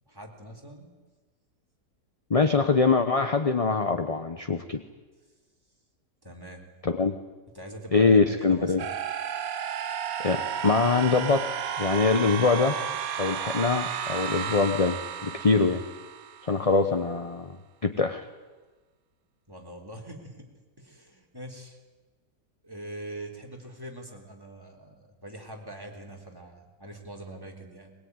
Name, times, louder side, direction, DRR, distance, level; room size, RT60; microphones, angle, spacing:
voice 1, 0.1-0.9 6.2-6.7 7.5-8.9 19.5-20.5 20.8-21.8 22.6-27.9, right 1 dB, 10° right, 0 dB, 3.6 m, -43 dB
voice 2, 2.3-4.8 6.8-7.2 7.9-8.8 10.2-12.8 13.2-15.8 16.4-17.5 17.8-18.2, left 4 dB, 30° left, 8 dB, 0.7 m, -23 dB
sound 1, 8.8-16.7, right 8 dB, 60° right, 1.3 m, -33 dB
21.5 x 21.0 x 9.6 m, 1.3 s
omnidirectional pair, 1.9 m